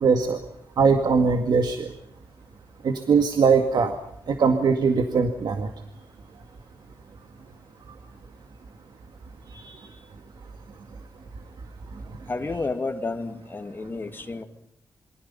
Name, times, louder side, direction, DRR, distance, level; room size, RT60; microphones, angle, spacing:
voice 1, 0.0-0.4 0.8-1.9 2.8-3.9 4.3-5.7 9.5-9.8, right 5 dB, 75° right, 2.1 m, -21 dB
voice 2, 12.3-14.4, left 3 dB, 30° left, 2.4 m, -31 dB
27.5 x 24.5 x 5.7 m
wide cardioid pair, 155°, 7 cm